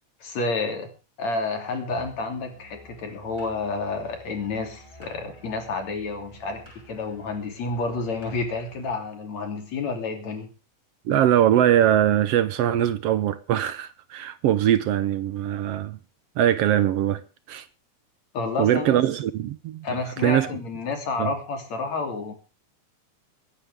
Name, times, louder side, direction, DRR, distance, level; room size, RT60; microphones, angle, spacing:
voice 1, 0.2-0.9 1.2-10.5 18.3-19.0 19.8-22.3, left 3 dB, 65° left, 4.3 m, -30 dB
Musical instrument, 1.9-9.0, equal, 10° right, 7.7 m, -50 dB
voice 2, 11.1-16.0 16.4-17.2 17.5-17.7 18.6-20.5 21.2-21.3, right 11 dB, 70° right, 1.6 m, -22 dB
23.5 x 10.5 x 3.6 m
omnidirectional pair, 3.4 m